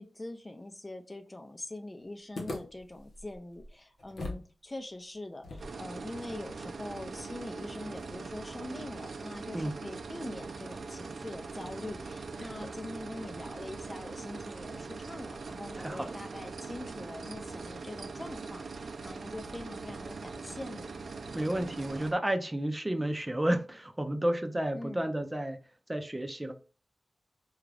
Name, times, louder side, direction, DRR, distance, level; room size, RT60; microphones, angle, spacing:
voice 1, 0.0-20.9 24.7-25.1, left 2 dB, 25° left, 0.5 m, -43 dB
sound 1, 2.3-4.5 4.8-4.9 5.4-8.6, left 2 dB, 80° left, 0.8 m, -44 dB
sound 2, 5.6-22.1, right 4 dB, 75° right, 0.4 m, -42 dB
voice 2, 15.8-16.2 21.3-25.6 25.9-26.5, right 1 dB, 20° right, 0.5 m, -31 dB
3.8 x 2.4 x 3.2 m
cardioid pair, 65°, 0 cm